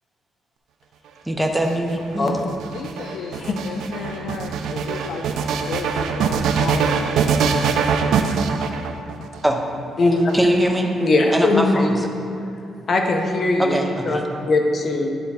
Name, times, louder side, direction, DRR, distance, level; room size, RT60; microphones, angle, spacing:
voice 1, 1.3-2.4 9.4-9.6 10.3-10.9 11.3-12.1 13.6-14.2, equal, 5° right, 2 dB, 0.5 m, -22 dB
sound 1, 1.4-9.4 10.2-11.0, right 6 dB, 80° right, 0.4 m, -23 dB
voice 2, 2.6-5.3 5.7-7.8, left 5 dB, 80° left, 2 dB, 0.4 m, -33 dB
voice 3, 10.0-10.4 11.0-11.9 12.9-13.8 14.0-15.1, left 2 dB, 35° left, 2 dB, 0.6 m, -19 dB
9.5 x 3.5 x 4.2 m, 2.7 s
cardioid pair, 160°, 0 cm